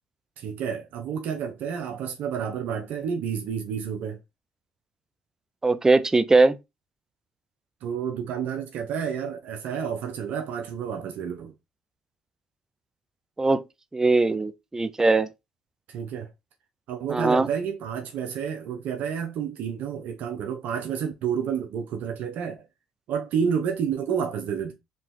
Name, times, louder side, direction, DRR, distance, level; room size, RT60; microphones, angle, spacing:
voice 1, 0.4-4.2 7.8-11.5 15.9-16.3 16.9-22.6 23.1-24.7, right 7 dB, 65° right, 0.6 m, -30 dB
voice 2, 5.6-6.6 13.4-13.6 13.9-15.3 17.1-17.5, right 3 dB, 20° right, 0.4 m, -20 dB
3.0 x 2.7 x 3.5 m
hypercardioid pair, 60°, 3 cm